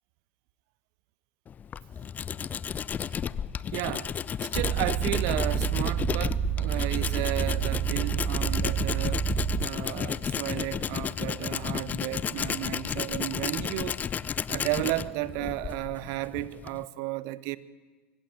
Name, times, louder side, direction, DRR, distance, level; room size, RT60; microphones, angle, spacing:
Tools, 1.5-16.9, left 7 dB, 25° left, 0.6 m, -33 dB
voice 1, 3.7-4.1 4.4-9.3 9.6-14.0 14.5-17.6, right 18 dB, 50° right, 1.1 m, -33 dB
sound 1, 4.5-9.7, right 8 dB, 25° right, 1.0 m, -28 dB
24.5 x 15.5 x 9.2 m
figure-of-eight pair, 90°, 7 cm